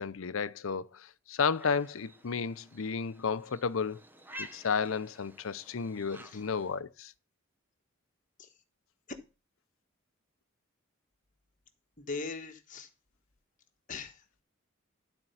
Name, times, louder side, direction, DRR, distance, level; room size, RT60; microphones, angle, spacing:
voice 1, 0.0-4.0 4.4-7.1, left 5 dB, 75° left, 0.6 m, -32 dB
sound 1, 1.5-6.8, equal, 10° right, 0.7 m, -51 dB
voice 2, 12.0-12.9 13.9-14.3, left 4 dB, 35° left, 1.4 m, -40 dB
12.5 x 4.4 x 5.6 m
head